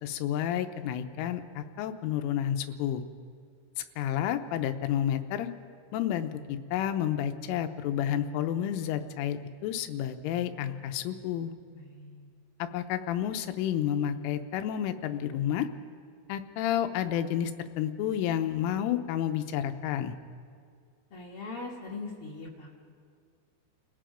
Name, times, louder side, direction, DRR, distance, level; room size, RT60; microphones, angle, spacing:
voice 1, 0.0-3.0 4.0-5.5 5.9-11.5 12.6-15.7 16.3-17.5 17.8-20.1, left 10 dB, 90° left, 9 dB, 3.4 m, -30 dB
voice 2, 11.7-12.3 21.1-22.8, left 3 dB, 65° left, -4 dB, 1.3 m, -41 dB
30.0 x 17.0 x 5.1 m, 2.2 s
omnidirectional pair, 5.5 m